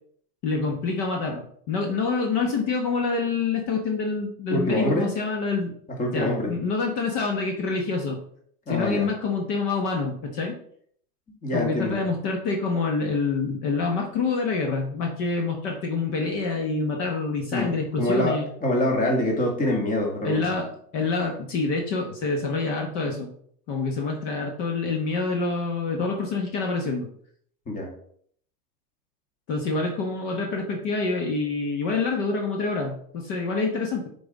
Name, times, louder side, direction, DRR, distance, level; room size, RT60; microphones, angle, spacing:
voice 1, 0.4-5.7 6.1-8.2 8.7-10.6 11.5-18.5 20.2-20.7 20.9-23.3 23.7-27.1 29.5-34.1, left 4 dB, 40° left, 2 dB, 1.3 m, -26 dB
voice 2, 4.5-5.1 5.9-6.6 8.7-9.1 11.4-12.0 17.5-20.4 27.7-27.9, left 1 dB, 15° left, 0 dB, 1.5 m, -25 dB
6.7 x 4.0 x 4.0 m, 0.62 s
hypercardioid pair, 135°, 47 cm